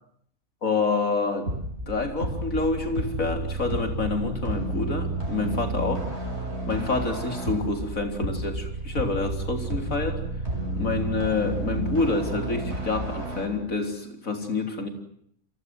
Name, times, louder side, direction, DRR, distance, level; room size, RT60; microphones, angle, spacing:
voice 1, 0.6-1.5 1.9-6.3 6.6-10.2 10.8-14.9, left 3 dB, 70° left, 5 dB, 4.3 m, -28 dB
sound 1, 1.5-13.5, right 2 dB, 50° right, 6.5 m, -31 dB
29.5 x 24.0 x 7.8 m, 0.68 s
omnidirectional pair, 1.5 m